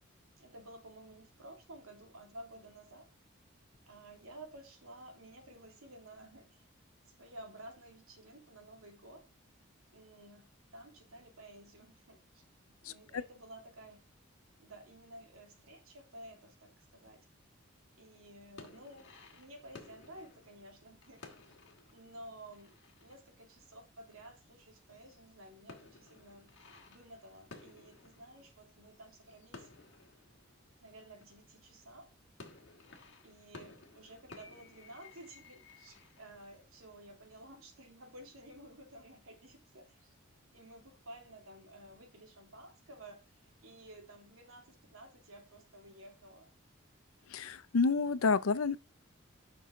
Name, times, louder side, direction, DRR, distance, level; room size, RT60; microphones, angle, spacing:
voice 1, 0.4-3.1 3.9-6.6 7.2-9.3 9.9-14.0 14.6-17.3 17.9-21.6 21.9-29.7 30.8-32.1 33.2-40.1 40.5-46.5, right 1 dB, 85° right, 2.4 m, -53 dB
sound 1, 18.6-24.6 24.9-31.6 32.1-36.7, left 3 dB, 60° left, 1.7 m, -56 dB
voice 2, 47.3-48.8, left 4 dB, 85° left, 0.6 m, -29 dB
9.5 x 6.0 x 3.7 m
head